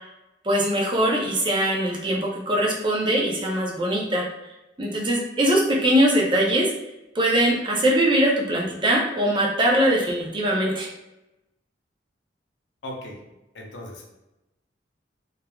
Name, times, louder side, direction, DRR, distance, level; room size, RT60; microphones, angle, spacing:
voice 1, 0.4-4.2 4.8-6.7 7.1-10.9, right 1 dB, 25° right, -2 dB, 0.5 m, -21 dB
voice 2, 12.8-13.2 13.5-14.0, left 1 dB, 90° left, -1 dB, 0.7 m, -37 dB
3.1 x 2.3 x 2.2 m, 0.96 s
head